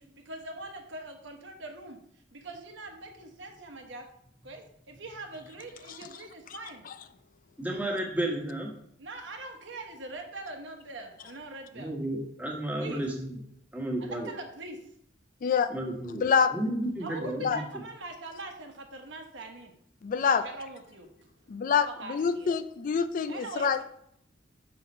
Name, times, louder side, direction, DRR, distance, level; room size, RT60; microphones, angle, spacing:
voice 1, 0.0-2.0 2.3-4.1 4.4-6.8 9.0-11.9 12.8-13.1 14.0-14.8 17.0-19.7 20.3-21.1 21.9-22.6 23.3-23.8, right 2 dB, 70° right, 4 dB, 1.1 m, -42 dB
voice 2, 7.6-8.7 11.7-13.4 13.7-14.3 15.7-17.5, right 1 dB, 10° right, -1 dB, 1.5 m, -32 dB
voice 3, 15.4-15.7 16.1-16.5 17.4-17.6 20.0-20.4 21.5-23.8, left 6 dB, 45° left, 12 dB, 0.3 m, -26 dB
6.5 x 4.0 x 5.5 m, 0.71 s
head